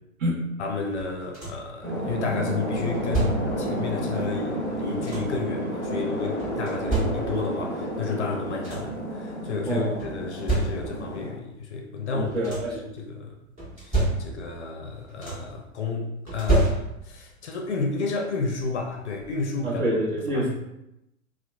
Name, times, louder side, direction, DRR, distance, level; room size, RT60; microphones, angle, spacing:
voice 1, 0.6-13.4 13.8-19.8 20.3-20.4, left 4 dB, 55° left, 1 dB, 0.5 m, -32 dB
sound 1, 1.0-1.8 2.7-3.7 4.6-5.5 6.4-7.6 8.2-8.3 8.5-9.1 10.0-11.1 12.1-12.9 13.6-14.6 14.9-15.6 16.3-17.3 18.6-18.7 19.2-19.4, right 2 dB, 15° right, 1.0 m, -29 dB
sound 2, 1.8-11.3, equal, 5° left, 1.3 m, -31 dB
voice 2, 12.1-12.7 19.6-20.5, right 1 dB, 40° right, -5 dB, 1.0 m, -26 dB
2.8 x 2.2 x 2.2 m, 0.86 s
figure-of-eight pair, 105°, 41 cm